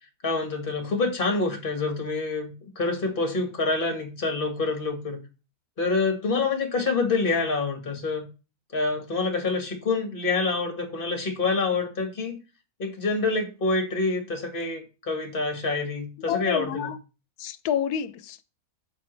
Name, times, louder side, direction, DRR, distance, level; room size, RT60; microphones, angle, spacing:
voice 1, 0.2-5.2 5.8-8.3 8.7-12.4 12.8-16.9, left 3 dB, 35° left, 1.8 m, -27 dB
voice 2, 16.3-17.0 17.4-18.4, left 9 dB, 90° left, 1.1 m, -28 dB
8.1 x 7.4 x 3.2 m
omnidirectional pair, 1.6 m